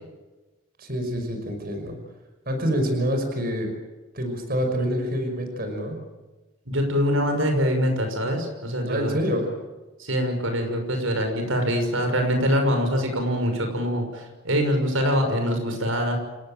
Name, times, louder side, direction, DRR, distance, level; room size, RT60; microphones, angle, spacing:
voice 1, 0.8-2.0 2.5-3.7 4.1-6.0 8.8-9.5, equal, 45° right, 5 dB, 5.7 m, -26 dB
voice 2, 6.7-9.2 10.0-16.2, equal, 85° right, 5 dB, 6.2 m, -24 dB
29.0 x 17.0 x 9.0 m, 1.2 s
head